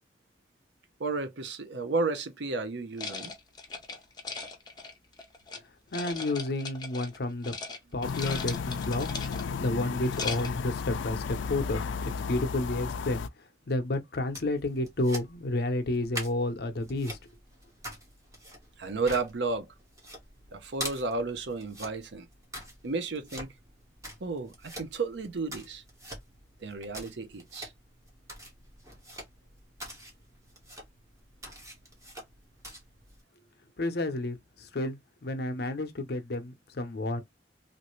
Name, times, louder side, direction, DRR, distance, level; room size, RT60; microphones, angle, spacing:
voice 1, 1.0-3.3 18.8-19.7 20.5-22.3 22.8-23.5 24.2-25.8 26.6-27.7, right 3 dB, 70° right, 0.6 m, -32 dB
sound 1, 3.0-5.6 5.9-7.2 7.4-7.8 8.0-9.6 10.0-10.6, left 4 dB, 25° left, 0.8 m, -39 dB
voice 2, 5.9-7.5 7.9-9.1 9.6-13.2 13.7-17.2 33.8-37.2, left 2 dB, 60° left, 0.7 m, -31 dB
sound 2, 8.0-13.3, left 5 dB, 85° left, 0.3 m, -34 dB
sound 3, 14.2-33.2, equal, 15° right, 1.2 m, -45 dB
3.1 x 2.6 x 3.1 m
head